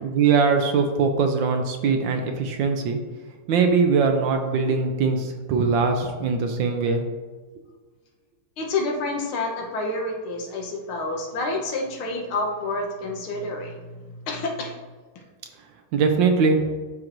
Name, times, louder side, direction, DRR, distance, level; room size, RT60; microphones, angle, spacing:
voice 1, 0.0-3.0 3.5-7.0 15.9-16.6, right 5 dB, 70° right, 5 dB, 1.3 m, -21 dB
voice 2, 8.6-14.8, left 2 dB, 80° left, 2 dB, 1.9 m, -29 dB
11.5 x 4.5 x 2.6 m, 1.3 s
omnidirectional pair, 2.3 m